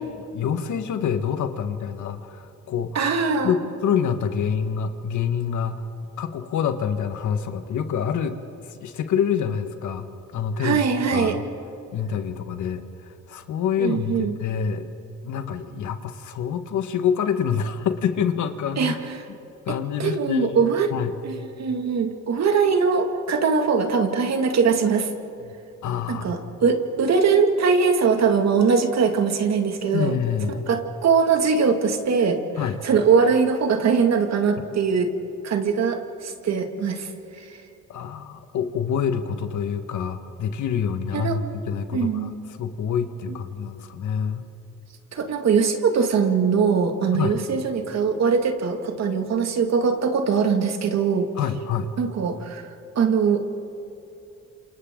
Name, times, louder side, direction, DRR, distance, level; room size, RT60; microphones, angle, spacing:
voice 1, 0.1-3.0 3.4-3.6 3.8-5.8 6.2-8.3 8.7-10.8 11.1-11.5 11.9-12.8 13.3-14.9 15.2-19.0 19.7-21.1 25.8-26.5 29.9-30.6 32.6-32.8 37.9-42.3 42.6-44.5 47.1-47.4 51.4-51.9, left 7 dB, 75° left, 8 dB, 1.6 m, -26 dB
voice 2, 2.9-3.5 10.6-11.4 13.8-14.3 18.8-19.0 19.7-20.9 21.2-25.1 26.1-30.1 30.5-32.4 32.8-35.1 35.4-37.1 41.1-41.4 41.9-42.3 43.3-43.4 45.1-51.3 52.0-52.6 53.0-53.4, right 5 dB, 60° right, 5 dB, 2.3 m, -21 dB
28.5 x 27.5 x 3.9 m, 2.9 s
cardioid pair, 90°, 30 cm